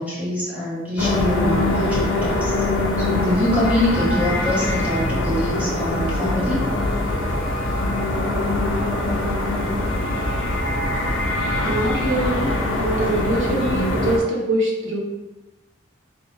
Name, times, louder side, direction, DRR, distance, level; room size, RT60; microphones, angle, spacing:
voice 1, 0.0-2.5 3.0-6.6, left 1 dB, 5° right, -8 dB, 1.0 m, -24 dB
sound 1, 1.0-14.2, left 2 dB, 80° left, 0.6 m, -23 dB
sound 2, 4.0-5.7 7.1-8.4, left 1 dB, 20° left, 0.4 m, -34 dB
voice 2, 11.6-12.5 12.8-15.0, right 1 dB, 80° right, -1 dB, 0.9 m, -23 dB
3.2 x 3.1 x 3.2 m, 1.0 s
head